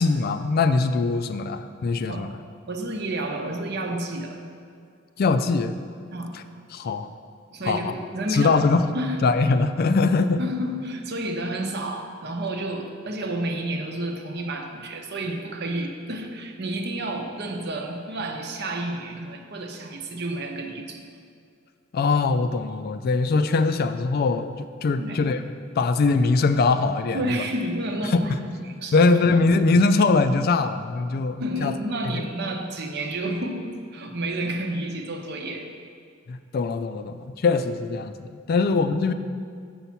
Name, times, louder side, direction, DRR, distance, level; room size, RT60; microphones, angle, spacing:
voice 1, 0.0-2.4 5.2-5.7 6.7-7.1 7.6-7.9 8.3-8.8 9.2-10.4 21.9-25.4 25.8-27.4 28.1-28.2 28.9-31.7 36.3-39.1, left 3 dB, 50° left, 10 dB, 0.4 m, -22 dB
voice 2, 2.7-4.4 6.1-6.3 7.5-8.6 8.9-9.2 10.4-21.0 25.0-25.2 27.1-28.3 28.8-29.0 31.4-35.7 38.5-38.6, right 1 dB, 55° right, 3 dB, 0.8 m, -30 dB
7.1 x 5.5 x 5.8 m, 2.2 s
head